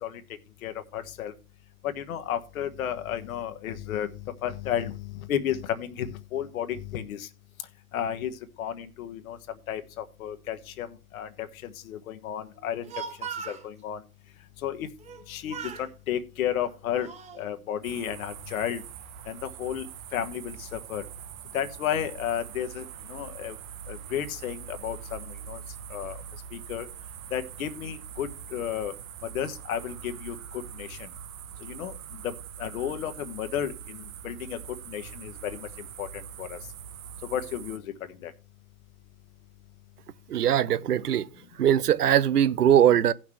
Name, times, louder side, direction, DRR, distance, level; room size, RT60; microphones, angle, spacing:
voice 1, 0.6-1.3 1.8-7.3 7.9-9.4 9.7-10.9 11.1-12.9 13.5-14.0 14.6-14.9 15.3-17.1 17.4-18.8 19.3-19.9 20.1-21.0 21.5-23.6 23.9-25.6 25.9-26.2 26.5-26.9 27.3-28.9 29.3-31.1 31.6-31.9 32.2-32.3 32.6-34.6 34.9-35.7 36.0-36.6 37.3-37.8 38.2-38.3, left 10 dB, 65° left, 1.3 m, -33 dB
Speech, 12.6-13.7 15.0-15.2 15.5-15.9 16.6-17.4, right 6 dB, 15° right, 0.7 m, -39 dB
sound 1, 17.8-37.8, right 8 dB, 60° right, 1.1 m, -43 dB
voice 2, 40.3-41.3 41.6-43.1, right 10 dB, 85° right, 0.7 m, -21 dB
16.5 x 5.9 x 3.2 m
hypercardioid pair, 110°, 45 cm